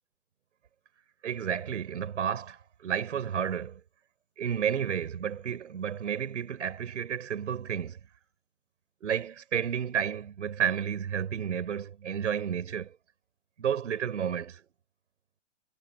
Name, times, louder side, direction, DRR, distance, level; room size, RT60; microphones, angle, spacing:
voice 1, 1.2-3.8 4.4-8.0 9.0-12.9 13.6-14.6, right 8 dB, 80° right, 5.8 m, -31 dB
hypercardioid pair, 160°, 36 cm